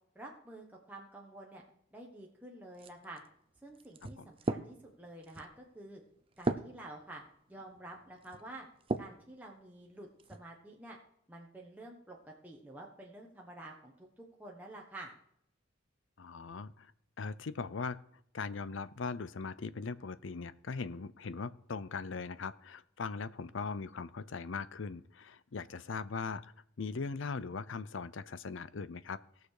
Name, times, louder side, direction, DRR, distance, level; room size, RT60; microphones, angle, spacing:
voice 1, 0.1-1.6 1.9-3.2 3.6-6.0 6.4-7.2 7.5-8.7 9.0-11.0 11.3-15.1, right 1 dB, 10° right, -2 dB, 1.2 m, -49 dB
sound 1, 2.7-9.2 9.8-10.4, right 2 dB, 25° right, 0.6 m, -40 dB
voice 2, 16.2-16.9 17.2-18.0 18.3-26.5 26.8-29.2, left 4 dB, 65° left, 16 dB, 0.6 m, -40 dB
17.5 x 6.7 x 4.8 m, 0.71 s
head